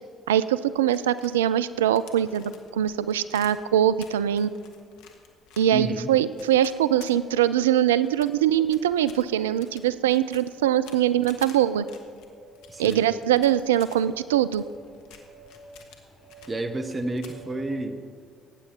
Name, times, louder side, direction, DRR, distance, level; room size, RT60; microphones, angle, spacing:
voice 1, 0.3-4.5 5.6-11.8 12.8-14.6, right 11 dB, 80° right, 16 dB, 0.3 m, -22 dB
sound 1, 0.6-7.6 8.0-14.0 14.4-16.6 16.8-17.4, left 7 dB, 70° left, 1.2 m, -51 dB
voice 2, 5.7-6.1 12.7-13.0 16.5-18.0, right 2 dB, 30° right, 9 dB, 1.1 m, -30 dB
sound 2, 11.9-17.8, right 1 dB, 45° left, 3.2 m, -51 dB
19.0 x 9.0 x 4.4 m, 2.1 s
hypercardioid pair, 50°, 0 cm